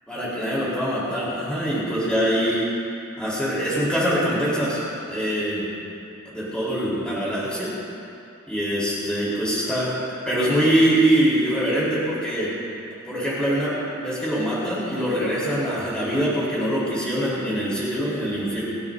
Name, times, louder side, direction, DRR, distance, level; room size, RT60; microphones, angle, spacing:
voice 1, 0.1-2.7 3.2-4.8 5.1-5.7 6.2-7.7 8.5-10.0 10.3-12.5 13.0-13.7 14.0-18.6, equal, 5° left, -9 dB, 4.0 m, -23 dB
29.0 x 11.0 x 2.8 m, 2.6 s
head